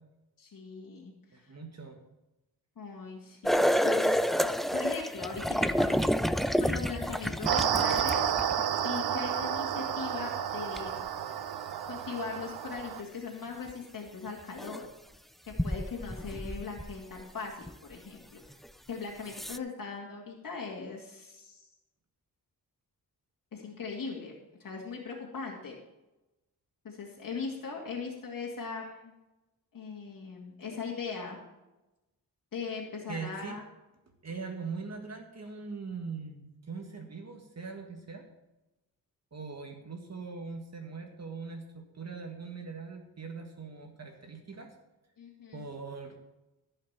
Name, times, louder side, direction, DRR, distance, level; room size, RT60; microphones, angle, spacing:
voice 1, 0.4-1.5 2.8-6.2 6.6-8.3 8.8-11.0 11.9-14.9 15.5-18.6 18.9-21.7 23.5-25.7 26.8-29.1 29.7-31.4 32.5-33.6 45.2-45.7, left 5 dB, 60° left, -2 dB, 2.3 m, -40 dB
voice 2, 1.3-2.0 33.1-33.6 34.2-38.3 39.3-44.7 45.5-46.2, right 4 dB, 45° right, 3 dB, 1.7 m, -41 dB
sound 1, 3.4-8.7 10.8-10.9 13.7-13.8 14.6-14.8 15.5-17.2 17.7-17.8 18.6-18.7 19.3-19.6, equal, ahead, 0.3 m, -29 dB
sound 2, 7.5-13.0, right 9 dB, 85° right, 0.8 m, -31 dB
14.5 x 5.7 x 7.3 m, 0.99 s
wide cardioid pair, 130°, 37 cm